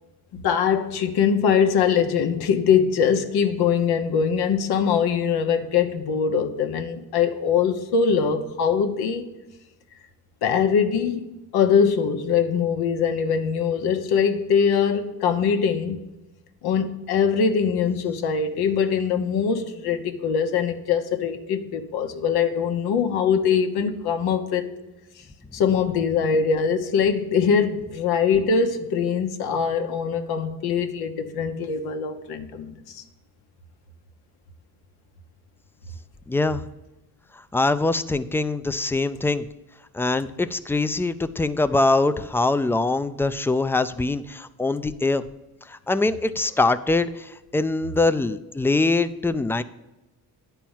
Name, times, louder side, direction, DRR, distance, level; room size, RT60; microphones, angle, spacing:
voice 1, 0.3-9.3 10.4-16.0 16.6-24.7 25.5-33.0, left 6 dB, 90° left, 1.1 m, -22 dB
voice 2, 36.3-36.6 37.5-39.5 39.9-45.2 45.7-49.6, left 2 dB, 5° left, 0.4 m, -23 dB
10.0 x 4.6 x 7.2 m
cardioid pair, 105°, 37 cm